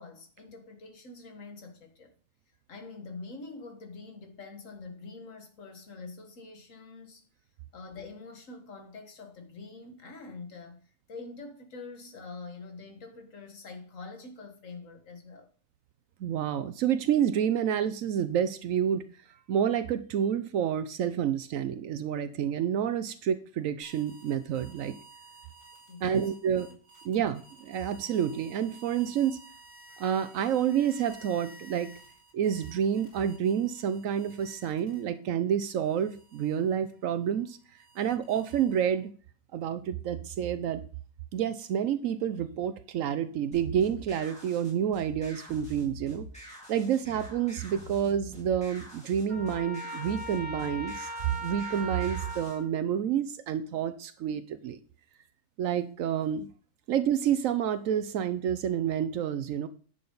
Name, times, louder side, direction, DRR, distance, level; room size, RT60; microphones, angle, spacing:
voice 1, 0.0-2.1 2.7-7.2 7.7-15.5 25.9-26.3, left 3 dB, 70° left, 1.9 m, -45 dB
voice 2, 16.2-19.0 19.5-24.9 26.0-26.7 27.0-29.4 30.0-31.9 32.3-37.6 38.0-39.1 39.5-40.8 41.3-46.3 46.7-51.1 51.4-54.8 55.6-56.5 56.9-59.7, right 9 dB, 80° right, 1.0 m, -29 dB
sound 1, 23.8-35.3 35.7-39.1, right 2 dB, 20° right, 3.7 m, -54 dB
sound 2, 43.5-52.6, equal, 5° left, 3.4 m, -46 dB
Trumpet, 49.3-52.7, equal, 40° right, 2.4 m, -39 dB
10.5 x 6.7 x 3.9 m
omnidirectional pair, 1.4 m